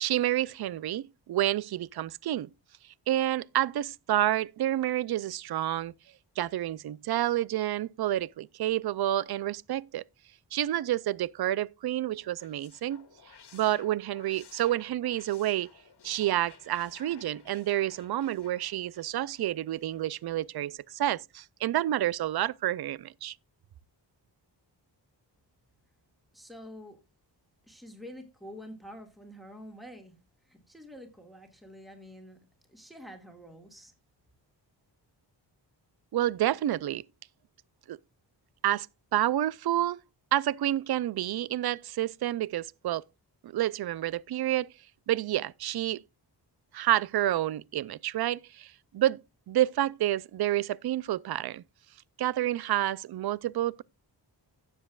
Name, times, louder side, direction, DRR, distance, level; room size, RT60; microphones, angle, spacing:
voice 1, 0.0-2.5 3.1-5.9 6.4-10.0 10.5-13.0 13.5-15.7 16.0-23.3 36.1-37.0 37.9-38.0 38.6-38.9 39.1-40.0 40.3-43.0 43.4-44.7 45.1-46.0 46.7-49.2 49.5-51.6 52.2-53.8, right 13 dB, 60° right, 0.5 m, -29 dB
sound 1, 12.2-20.2, left 7 dB, 65° left, 1.8 m, -56 dB
voice 2, 26.3-27.0 27.7-30.1 30.5-32.4 32.7-33.9, equal, ahead, 1.9 m, -47 dB
16.5 x 7.5 x 2.3 m
wide cardioid pair, 125°, 43 cm